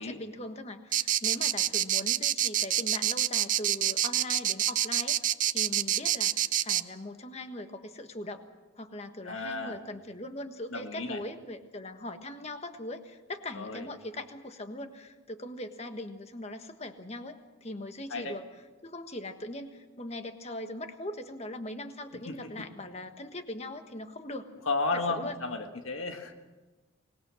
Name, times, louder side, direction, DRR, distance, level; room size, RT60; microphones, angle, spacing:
voice 1, 0.0-8.4 8.7-18.5 18.8-24.5 24.9-25.4, left 1 dB, 30° left, 7 dB, 1.5 m, -40 dB
sound 1, 0.9-6.8, right 12 dB, 40° right, 0.6 m, -26 dB
voice 2, 9.2-9.8 10.7-11.2 13.5-13.9 18.1-18.3 22.3-22.7 24.6-26.3, left 3 dB, 90° left, 4 dB, 1.7 m, -33 dB
24.5 x 20.0 x 6.4 m, 1.2 s
head